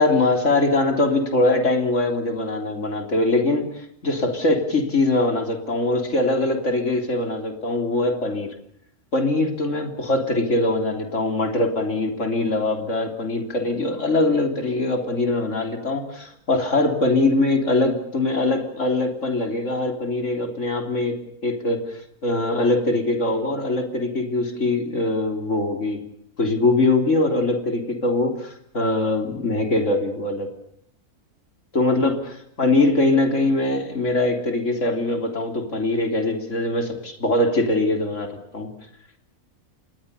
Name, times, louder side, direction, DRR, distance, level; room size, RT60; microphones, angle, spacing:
voice 1, 0.0-8.5 9.1-21.2 21.4-26.0 26.4-30.5 31.7-38.7, left 2 dB, 55° left, 5 dB, 3.8 m, -22 dB
27.0 x 21.0 x 6.9 m, 0.72 s
omnidirectional pair, 1.6 m